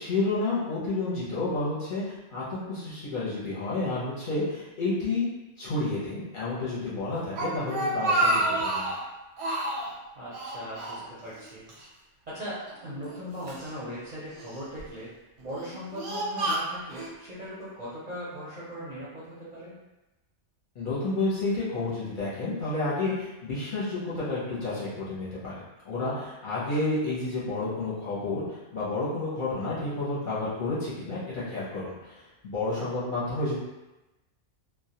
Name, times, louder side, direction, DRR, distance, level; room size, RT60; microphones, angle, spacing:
voice 1, 0.0-5.3 5.6-8.9 20.8-32.1 32.4-33.6, left 2 dB, 50° left, -9 dB, 0.7 m, -30 dB
Speech, 7.1-9.0 9.4-9.9 10.3-11.4 11.7-11.8 12.7-13.7 14.4-14.8 15.4-17.1, right 1 dB, 90° right, 0.9 m, -29 dB
voice 2, 10.2-11.6 12.3-15.1 15.4-19.8, equal, 45° right, -10 dB, 0.5 m, -39 dB
2.1 x 2.1 x 2.8 m, 1.0 s
omnidirectional pair, 1.2 m